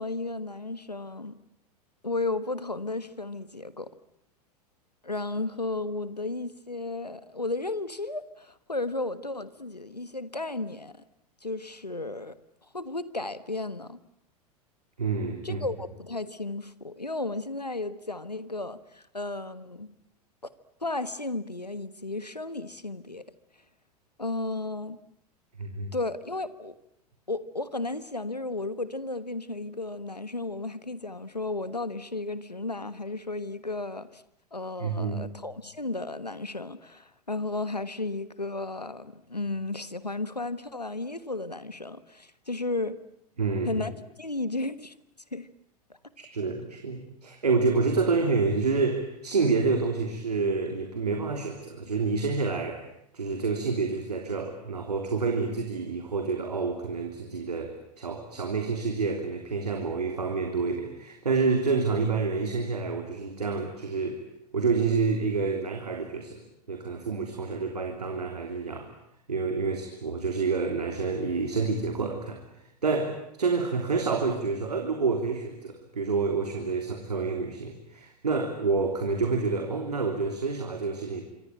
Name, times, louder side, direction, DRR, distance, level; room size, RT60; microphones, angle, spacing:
voice 1, 0.0-1.4 2.0-3.9 5.0-11.0 11.4-12.4 12.7-14.0 15.4-19.9 20.4-20.5 20.8-23.2 24.2-25.0 25.9-26.8 27.3-34.2 34.5-43.0 43.6-43.9 44.2-44.9 45.3-45.5, left 2 dB, 90° left, 15 dB, 1.4 m, -34 dB
voice 2, 15.0-15.6 25.6-25.9 34.8-35.4 43.4-43.8 46.3-52.8 53.1-64.2 64.5-66.4 66.7-68.9 69.3-72.4 72.8-81.2, right 4 dB, 75° right, 4 dB, 3.3 m, -28 dB
26.5 x 25.0 x 8.9 m, 0.76 s
figure-of-eight pair, 90°, 20 cm